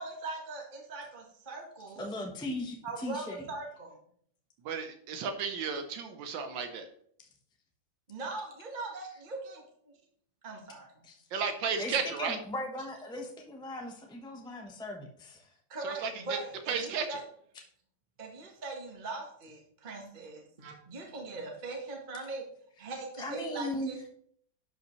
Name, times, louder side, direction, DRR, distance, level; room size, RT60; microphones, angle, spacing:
voice 1, 0.0-2.0 2.8-4.0 8.1-9.9 10.4-10.9 15.7-17.2 18.2-22.4 22.8-24.1, right 3 dB, 30° right, 0 dB, 1.3 m, -41 dB
voice 2, 1.9-3.5 11.0-11.2 11.8-15.5 23.2-24.0, left 1 dB, 5° left, 2 dB, 0.3 m, -38 dB
voice 3, 4.6-6.8 11.3-12.4 15.8-16.1 16.7-17.1, right 6 dB, 80° right, 7 dB, 1.5 m, -33 dB
11.5 x 5.3 x 3.1 m, 0.63 s
omnidirectional pair, 2.0 m